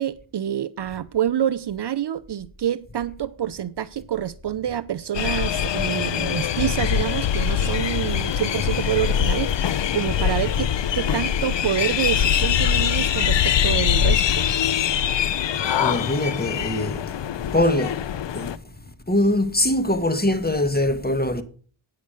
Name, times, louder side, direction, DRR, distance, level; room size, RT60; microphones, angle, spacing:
voice 1, 0.0-10.7 10.9-14.4, right 10 dB, 55° right, 0.7 m, -27 dB
sound 1, 5.1-18.6, left 9 dB, 60° left, 0.8 m, -23 dB
voice 2, 15.8-17.0 17.5-18.0 18.3-18.5 19.1-21.4, left 1 dB, 20° left, 1.7 m, -22 dB
9.3 x 6.7 x 6.6 m
cardioid pair, 45°, 50 cm